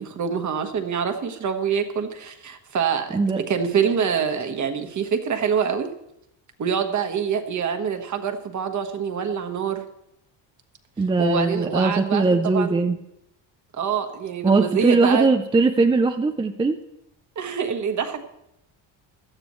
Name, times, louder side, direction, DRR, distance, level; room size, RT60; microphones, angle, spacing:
voice 1, 0.0-5.9 6.6-9.8 11.2-12.9 13.8-15.3 17.3-18.2, right 7 dB, 40° right, 6 dB, 1.4 m, -25 dB
voice 2, 11.0-13.0 14.4-16.8, right 3 dB, 10° right, 6 dB, 0.4 m, -20 dB
17.0 x 12.5 x 3.2 m, 0.81 s
cardioid pair, 135°, 46 cm